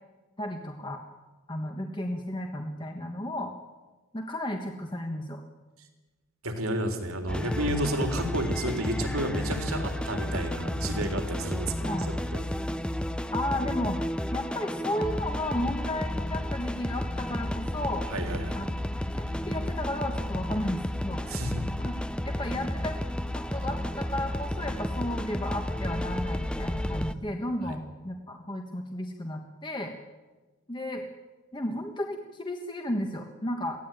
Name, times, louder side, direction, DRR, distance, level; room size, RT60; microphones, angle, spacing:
voice 1, 0.4-1.0 1.5-3.5 4.1-5.4 11.8-12.1 13.3-14.0 14.3-18.1 18.5-18.7 19.1-21.2 21.8-21.9 22.2-23.0 23.3-29.9 30.7-31.0 31.5-33.8, left 1 dB, 20° left, 3 dB, 1.4 m, -33 dB
voice 2, 6.4-12.4 18.1-18.6 21.3-21.5, right 1 dB, 80° right, 5 dB, 3.6 m, -31 dB
sound 1, 7.3-27.1, left 1 dB, 5° left, 0.7 m, -32 dB
23.0 x 16.5 x 9.2 m, 1.3 s
head